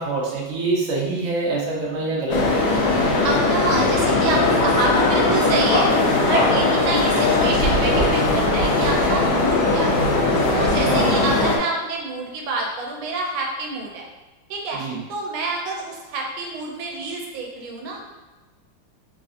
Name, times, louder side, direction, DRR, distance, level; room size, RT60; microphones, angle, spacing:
voice 1, 0.0-2.6 5.3-5.5 10.8-11.2 14.7-15.0, right 3 dB, 60° right, -5 dB, 0.9 m, -25 dB
sound 1, 2.3-11.6, left 2 dB, 75° left, 1.0 m, -19 dB
voice 2, 3.2-5.9 6.2-10.1 10.5-14.0 14.5-14.8 15.1-18.0, right 3 dB, 85° right, 0 dB, 1.4 m, -27 dB
3.4 x 2.3 x 2.5 m, 1.2 s
omnidirectional pair, 2.2 m